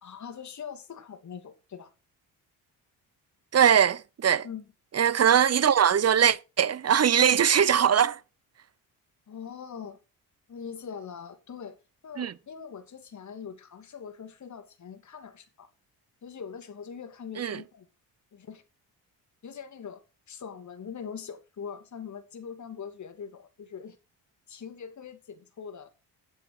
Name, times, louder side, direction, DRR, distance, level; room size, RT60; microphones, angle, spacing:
voice 1, 0.0-1.9 4.4-4.6 9.3-10.0 10.5-11.8 12.0-15.7 16.2-17.9 18.3-18.6 19.4-20.0 20.3-24.0 24.5-25.9, left 7 dB, 45° left, 2.4 m, -42 dB
voice 2, 3.5-4.5 4.9-8.2 12.2-12.3 17.4-17.6, right 8 dB, 40° right, 0.8 m, -21 dB
10.0 x 8.7 x 4.9 m
cardioid pair, 80°, 39 cm